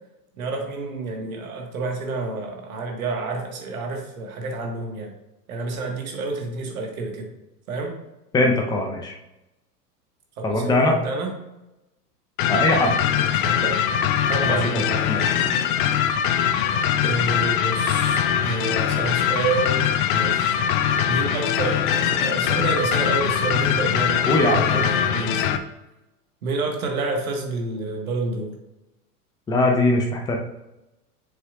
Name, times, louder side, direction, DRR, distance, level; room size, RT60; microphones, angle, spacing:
voice 1, 0.4-5.1 5.5-7.3 7.7-8.0 10.4-11.3 13.1-13.8 14.3-15.1 17.0-20.6 21.1-25.6 26.4-28.6, right 3 dB, 60° right, 2 dB, 1.7 m, -29 dB
voice 2, 8.3-9.2 10.4-10.9 12.5-12.9 14.5-15.4 24.3-24.9 29.5-30.4, left 1 dB, 10° left, 2 dB, 0.8 m, -21 dB
sound 1, 12.4-25.6, left 9 dB, 35° left, 0.5 m, -22 dB
7.5 x 6.3 x 2.4 m, 0.96 s
figure-of-eight pair, 100°, 47 cm